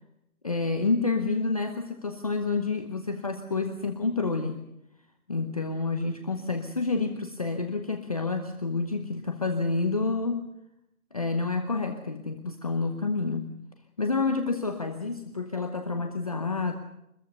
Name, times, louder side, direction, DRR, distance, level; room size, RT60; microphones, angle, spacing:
voice 1, 0.4-4.6 5.3-10.5 11.1-13.5 14.0-16.7, left 3 dB, 25° left, 6 dB, 0.9 m, -29 dB
24.5 x 21.0 x 6.6 m, 0.84 s
figure-of-eight pair, 160°, 46 cm